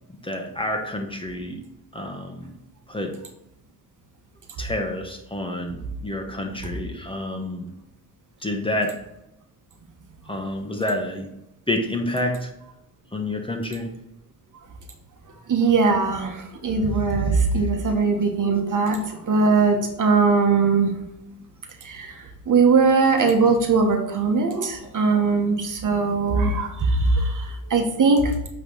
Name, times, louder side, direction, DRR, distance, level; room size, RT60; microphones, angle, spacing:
voice 1, 0.2-1.6 1.9-2.5 2.9-3.1 4.6-7.7 8.4-8.9 10.3-11.3 11.7-12.5 13.1-13.9, left 1 dB, 15° left, 3 dB, 1.2 m, -28 dB
voice 2, 15.5-20.9 21.8-22.2 22.5-28.3, right 4 dB, 50° right, 4 dB, 1.3 m, -20 dB
8.3 x 3.4 x 3.9 m, 0.86 s
supercardioid pair, 65°, 39 cm